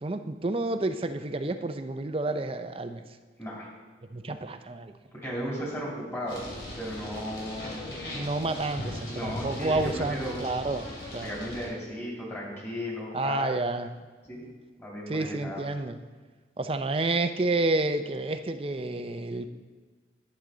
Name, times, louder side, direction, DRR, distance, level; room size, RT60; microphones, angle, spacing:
voice 1, 0.0-3.0 4.1-4.9 8.1-11.3 13.1-13.9 15.1-16.0 16.6-19.5, right 2 dB, 30° right, 9 dB, 0.5 m, -30 dB
voice 2, 5.2-6.4 6.8-7.8 9.1-10.5 11.2-13.6 14.3-14.4 14.8-15.6, equal, 15° left, -5 dB, 3.0 m, -35 dB
sound 1, 6.3-11.6, left 1 dB, 70° left, 3.1 m, -38 dB
11.5 x 8.7 x 3.9 m, 1.4 s
head